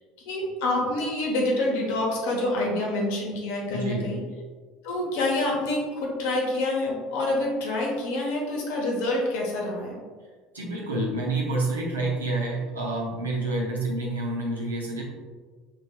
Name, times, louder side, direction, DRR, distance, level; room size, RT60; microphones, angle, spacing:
voice 1, 0.2-4.2 4.8-10.0, left 2 dB, 70° left, -2 dB, 1.0 m, -27 dB
voice 2, 3.7-4.1 10.5-15.0, right 2 dB, 90° right, -3 dB, 0.8 m, -28 dB
6.0 x 3.0 x 2.2 m, 1.5 s
hypercardioid pair, 70°, 0 cm